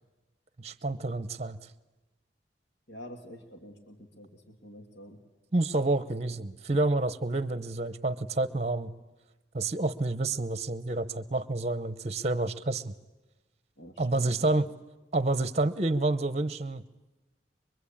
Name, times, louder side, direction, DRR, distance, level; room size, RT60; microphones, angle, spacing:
voice 1, 0.6-1.6 5.5-8.9 9.5-12.9 14.0-14.7 15.1-16.8, right 2 dB, 35° right, 13 dB, 0.9 m, -29 dB
voice 2, 2.9-5.2 13.8-14.5, equal, 75° left, 3 dB, 2.6 m, -48 dB
24.0 x 23.0 x 8.7 m, 1.1 s
head